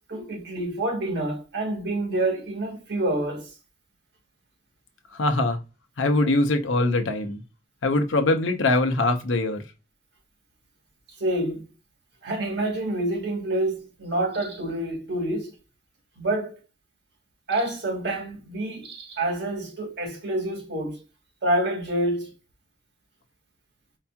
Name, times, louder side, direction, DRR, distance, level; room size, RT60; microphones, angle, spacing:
voice 1, 0.1-3.5 11.2-11.6 12.2-15.5 16.2-16.5 17.5-21.0 21.4-22.3, right 1 dB, 60° right, 1.4 m, -27 dB
voice 2, 5.1-5.6 6.0-7.4 7.8-9.6, left 2 dB, 80° left, 0.7 m, -22 dB
4.7 x 2.8 x 2.3 m
head